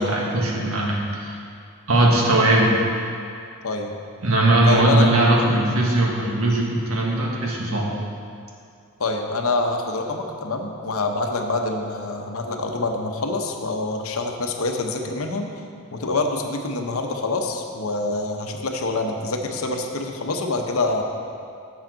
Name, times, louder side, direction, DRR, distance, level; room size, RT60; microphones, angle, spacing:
voice 1, 0.0-1.3 1.9-2.7 4.2-7.9, right 1 dB, 70° right, -2 dB, 1.5 m, -19 dB
voice 2, 3.6-4.0 4.7-5.1 9.0-15.5 15.9-21.0, left 3 dB, 70° left, 3 dB, 0.8 m, -26 dB
10.5 x 7.2 x 3.9 m, 2.4 s
head